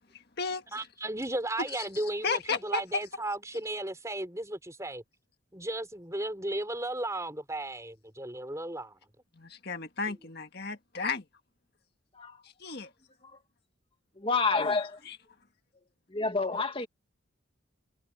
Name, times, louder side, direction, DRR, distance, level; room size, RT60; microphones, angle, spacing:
voice 1, 0.1-0.6 1.7-3.0 9.3-11.3 12.4-12.9 14.6-14.8 15.1-15.2, left 4 dB, 50° left, 1.8 m, -34 dB
voice 2, 0.7-5.0 5.5-8.9, right 1 dB, 15° right, 4.6 m, -35 dB
voice 3, 14.2-15.0 16.1-16.9, left 4 dB, 25° left, 1.9 m, -29 dB
head